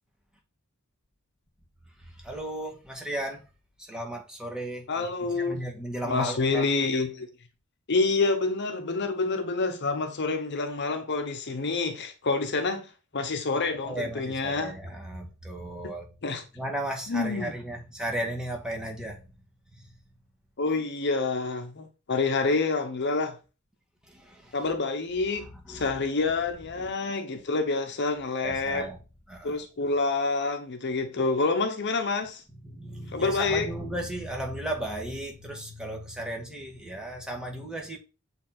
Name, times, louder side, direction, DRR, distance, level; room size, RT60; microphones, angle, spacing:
voice 1, 2.2-3.4 3.9-5.1 5.3-6.6 13.8-16.0 16.5-19.2 24.1-24.5 25.7-25.9 28.4-29.0 29.3-29.5 32.6-38.0, right 1 dB, 5° right, 1.7 m, -35 dB
voice 2, 4.9-5.7 6.0-7.3 7.9-14.7 16.2-16.4 17.1-17.5 20.6-23.4 24.5-28.9 29.4-32.4 33.1-33.7, left 3 dB, 50° left, 0.8 m, -27 dB
7.5 x 4.2 x 4.3 m
head